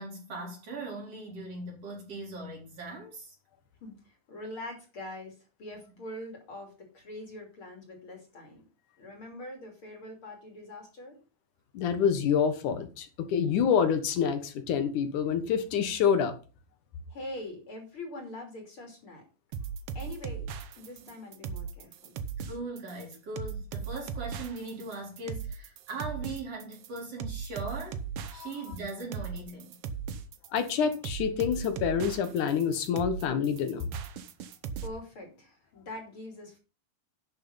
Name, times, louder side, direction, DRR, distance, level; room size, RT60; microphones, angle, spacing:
voice 1, 0.0-3.4 22.5-28.0 28.3-29.8, right 2 dB, 45° right, 4.8 m, -39 dB
voice 2, 3.8-8.6 9.0-11.2 17.1-19.2 20.0-20.5 20.8-22.2 34.8-36.6, left 1 dB, 40° left, 3.6 m, -43 dB
voice 3, 11.7-16.3 28.4-28.5 30.5-33.9, left 7 dB, 70° left, 2.7 m, -27 dB
sound 1, 19.5-34.9, right 6 dB, 75° right, 1.4 m, -38 dB
11.0 x 6.7 x 5.6 m
omnidirectional pair, 3.9 m